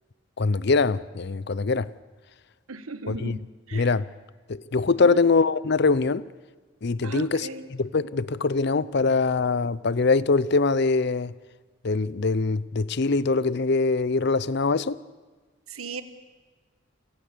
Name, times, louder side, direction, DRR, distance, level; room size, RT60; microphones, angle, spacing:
voice 1, 0.4-1.9 3.1-3.4 3.7-4.1 4.5-6.2 6.8-11.3 11.8-15.0, left 4 dB, 50° left, 0.6 m, -23 dB
voice 2, 2.7-3.4 3.7-3.9 5.0-5.2 7.0-7.7 15.7-16.0, right 3 dB, 85° right, 1.3 m, -36 dB
28.5 x 18.0 x 6.8 m
head